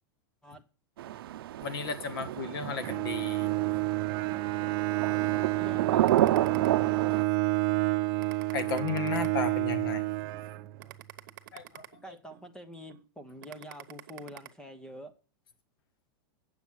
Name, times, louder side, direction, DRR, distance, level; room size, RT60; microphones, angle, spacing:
sound 1, 1.0-7.2, right 13 dB, 90° right, 0.5 m, -30 dB
voice 1, 1.6-3.5 5.4-5.5 6.8-6.9 8.5-10.0 11.5-11.8, left 6 dB, 80° left, 1.8 m, -34 dB
Bowed string instrument, 2.8-11.0, right 19 dB, 45° right, 0.7 m, -29 dB
voice 2, 5.6-6.4 12.0-15.1, equal, 5° left, 0.9 m, -46 dB
sound 2, 6.1-7.2 7.7-7.8 8.2-9.8 10.3-10.4 10.8-12.5 12.9-13.0 13.4-14.5, right 14 dB, 65° right, 1.1 m, -48 dB
8.9 x 7.1 x 6.3 m
supercardioid pair, 150°, 12 cm